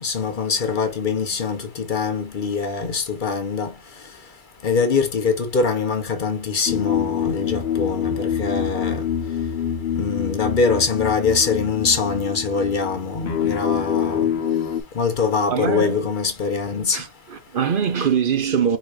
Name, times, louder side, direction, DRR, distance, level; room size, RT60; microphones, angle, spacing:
voice 1, 0.0-3.7 4.6-9.0 10.0-14.2 15.0-17.0, left 5 dB, 55° left, 1.0 m, -23 dB
sound 1, 6.7-14.8, left 8 dB, 75° left, 1.3 m, -25 dB
voice 2, 15.5-16.0 16.9-18.8, right 7 dB, 60° right, 0.9 m, -23 dB
4.7 x 4.0 x 2.5 m
omnidirectional pair, 1.0 m